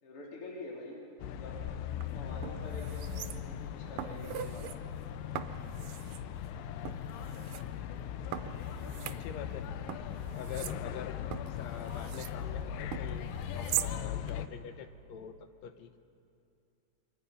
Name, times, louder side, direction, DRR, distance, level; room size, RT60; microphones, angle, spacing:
voice 1, 0.0-1.1 1.3-1.6 2.1-4.9, left 2 dB, 40° left, -4 dB, 3.7 m, -47 dB
sound 1, 1.2-14.5, left 9 dB, 90° left, 2.6 m, -39 dB
sound 2, 1.9-2.0 2.4-3.7 4.0-4.8 5.4-6.2 6.9-7.6 8.3-9.6 9.9-12.4 12.9-13.9 14.3-14.4, right 12 dB, 80° right, 2.3 m, -41 dB
voice 2, 9.0-9.7 10.3-11.2 11.5-15.4 15.6-16.0, left 8 dB, 75° left, 9 dB, 1.7 m, -45 dB
28.0 x 25.0 x 5.6 m, 2.6 s
omnidirectional pair, 4.0 m